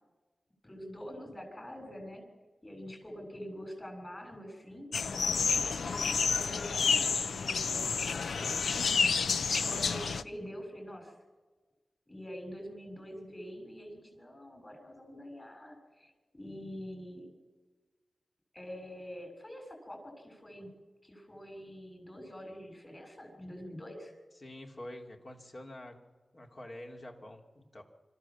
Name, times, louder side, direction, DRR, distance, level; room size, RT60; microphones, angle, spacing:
voice 1, 0.6-2.2 2.6-8.9 9.6-11.1 12.1-17.3 18.5-20.7 21.0-24.1, equal, 25° left, 5 dB, 6.8 m, -46 dB
sound 1, 4.9-10.2, left 5 dB, 90° left, 0.6 m, -29 dB
voice 2, 24.4-26.0 26.3-27.8, left 1 dB, 45° left, 3 dB, 2.8 m, -47 dB
25.5 x 14.0 x 7.4 m, 1.3 s
cardioid pair, 60°, 0 cm